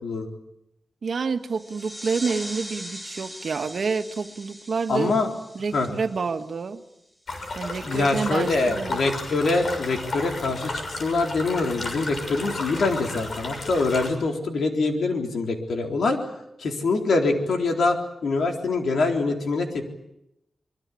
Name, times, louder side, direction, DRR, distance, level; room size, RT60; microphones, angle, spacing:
voice 1, 1.0-5.2 5.5-6.8 7.5-9.0, right 5 dB, 70° right, 7 dB, 1.7 m, -28 dB
sound 1, 1.5-6.8, equal, 20° left, 4.5 m, -40 dB
voice 2, 4.9-5.3 5.7-5.9 7.8-16.2 16.6-18.0 18.2-19.9, left 3 dB, 90° left, 3 dB, 3.9 m, -24 dB
sound 2, 7.3-14.1, left 2 dB, 65° left, 6.7 m, -33 dB
25.0 x 23.0 x 8.6 m, 0.84 s
cardioid pair, 70°, 0 cm